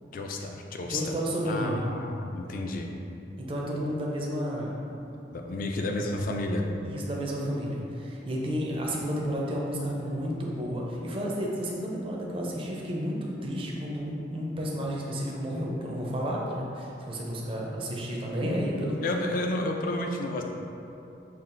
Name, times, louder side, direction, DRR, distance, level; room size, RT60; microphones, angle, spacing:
voice 1, 0.1-1.1 1.5-2.9 5.3-6.6 18.4-18.6 19.0-20.4, left 2 dB, 50° left, 2 dB, 0.3 m, -31 dB
voice 2, 0.8-1.8 3.4-4.8 6.8-19.0, equal, 30° right, -3 dB, 0.5 m, -31 dB
5.5 x 2.4 x 2.5 m, 2.8 s
head